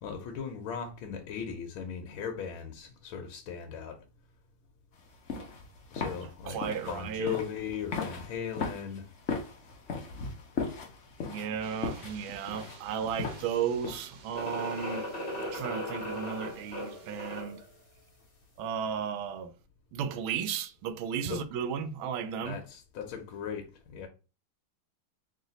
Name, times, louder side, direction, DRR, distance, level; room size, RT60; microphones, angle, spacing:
voice 1, 0.0-4.0 5.9-6.6 6.9-9.1 21.3-21.4 22.4-24.1, left 7 dB, 80° left, 1.5 m, -38 dB
sound 1, 5.0-14.2, left 4 dB, 60° left, 0.7 m, -38 dB
voice 2, 6.5-7.3 11.2-15.0 15.5-17.6 18.6-19.5 19.9-22.6, right 7 dB, 80° right, 1.4 m, -34 dB
sound 2, 11.6-17.4, right 5 dB, 65° right, 1.2 m, -54 dB
sound 3, 14.3-17.7, equal, 30° left, 1.2 m, -37 dB
3.2 x 3.1 x 3.9 m
omnidirectional pair, 2.3 m